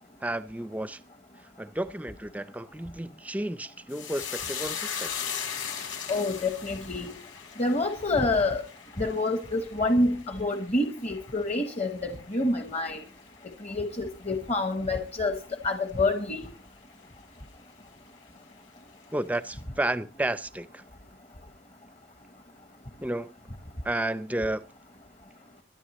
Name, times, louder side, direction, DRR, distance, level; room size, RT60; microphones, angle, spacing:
voice 1, 0.2-1.0 1.6-5.1 19.1-20.8 23.0-23.3 23.8-24.7, right 1 dB, 10° right, 0.5 m, -32 dB
sound 1, 3.9-12.5 12.8-13.5 13.8-14.0, left 7 dB, 75° left, 4.3 m, -38 dB
voice 2, 6.1-7.1 7.6-8.6 9.0-13.0 13.6-15.4 15.6-16.5, left 2 dB, 35° left, 1.1 m, -27 dB
22.5 x 10.5 x 3.1 m
head